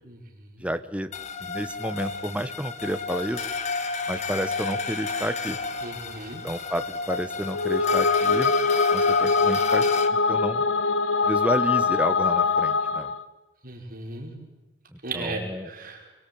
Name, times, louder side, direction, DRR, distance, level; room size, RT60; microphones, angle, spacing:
voice 1, 0.6-1.1 1.4-3.4 4.1-5.6 6.4-8.5 8.9-9.9 10.3-10.6 11.2-13.1 14.9-15.7, equal, 5° right, 10 dB, 1.2 m, -30 dB
sound 1, 1.1-10.1, left 4 dB, 35° left, 1.7 m, -31 dB
voice 2, 5.8-6.4 13.6-14.3 15.0-16.1, right 2 dB, 50° right, 0 dB, 5.4 m, -36 dB
sound 2, 7.5-13.2, left 4 dB, 65° left, 1.2 m, -23 dB
28.0 x 23.0 x 8.7 m, 1.1 s
head